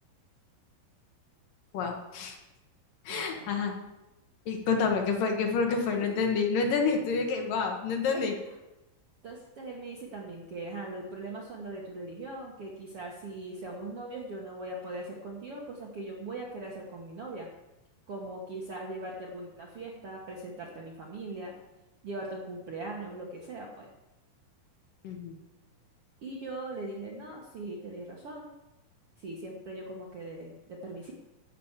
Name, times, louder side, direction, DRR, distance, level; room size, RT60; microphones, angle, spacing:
voice 1, 1.7-2.4 3.1-3.7 4.5-8.3 25.0-25.3, left 5 dB, 65° left, 3 dB, 2.7 m, -28 dB
voice 2, 3.1-3.6 5.9-6.5 8.1-8.3 9.2-17.5 18.1-21.5 22.0-23.9 26.2-28.5 29.2-31.1, right 2 dB, 60° right, -1 dB, 1.6 m, -40 dB
13.5 x 5.9 x 7.3 m, 0.99 s
omnidirectional pair, 4.5 m